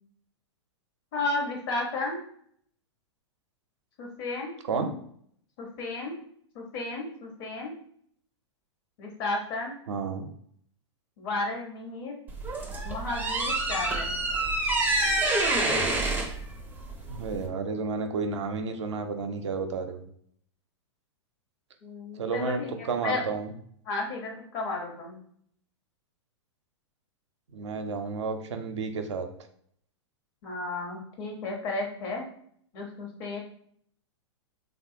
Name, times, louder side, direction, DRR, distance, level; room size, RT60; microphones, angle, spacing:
voice 1, 1.1-2.2 4.0-4.5 5.6-6.2 6.5-7.7 9.0-9.8 11.2-12.2 12.8-14.1 21.8-23.3 23.8-25.2 30.4-32.2 32.7-33.4, left 3 dB, 50° left, 0 dB, 1.0 m, -33 dB
voice 2, 9.9-10.3 17.1-20.0 22.2-23.5 27.5-29.3, right 4 dB, 75° right, 7 dB, 0.5 m, -31 dB
sound 1, 12.3-17.5, right 2 dB, 10° right, 0.5 m, -27 dB
3.4 x 2.3 x 2.7 m, 0.64 s
hypercardioid pair, 110°, 15 cm